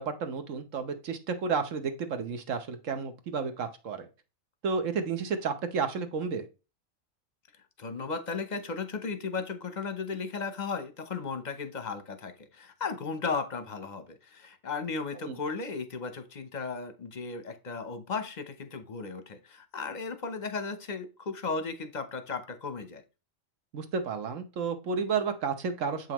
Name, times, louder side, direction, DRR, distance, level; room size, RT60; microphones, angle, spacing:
voice 1, 0.0-4.1 4.6-6.5 15.3-15.4 23.7-26.1, right 5 dB, 65° right, 1.3 m, -31 dB
voice 2, 7.8-23.0, left 4 dB, 40° left, 0.8 m, -35 dB
7.5 x 5.5 x 3.0 m
omnidirectional pair, 1.4 m